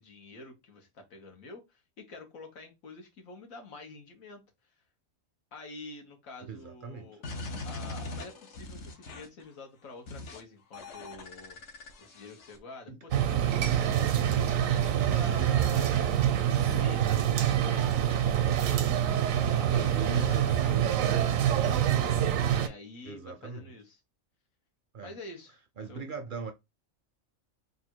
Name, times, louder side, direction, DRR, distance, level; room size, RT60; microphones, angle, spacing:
voice 1, 0.0-4.4 5.5-7.2 7.6-11.6 12.0-16.1 16.4-17.2 17.5-19.0 19.3-22.2 22.5-24.0 25.0-25.6 25.9-26.1, left 3 dB, 90° left, 1.6 m, -47 dB
voice 2, 6.5-7.1 12.9-13.0 19.9-20.5 23.0-23.7 24.9-25.2 25.8-26.5, right 4 dB, 55° right, 0.6 m, -40 dB
sound 1, 7.2-9.4 10.1-10.4 10.7-12.6, left 2 dB, 65° left, 1.1 m, -41 dB
sound 2, 13.1-22.7, right 10 dB, 80° right, 1.0 m, -26 dB
3.5 x 2.6 x 4.4 m
omnidirectional pair, 1.4 m